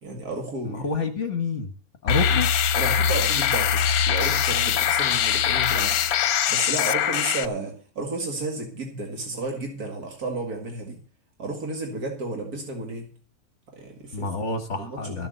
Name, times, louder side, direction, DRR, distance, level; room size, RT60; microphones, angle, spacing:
voice 1, 0.0-0.8 2.3-2.4 2.8-6.0 6.5-11.0 11.4-13.1 13.7-14.3 14.8-15.3, right 2 dB, 90° right, 2 dB, 2.5 m, -32 dB
voice 2, 0.6-1.7 2.0-2.5 14.1-15.3, left 4 dB, 55° left, 7 dB, 1.6 m, -28 dB
sound 1, 2.1-7.5, left 8 dB, 80° left, 1.2 m, -22 dB
14.0 x 7.1 x 6.7 m, 0.41 s
omnidirectional pair, 1.5 m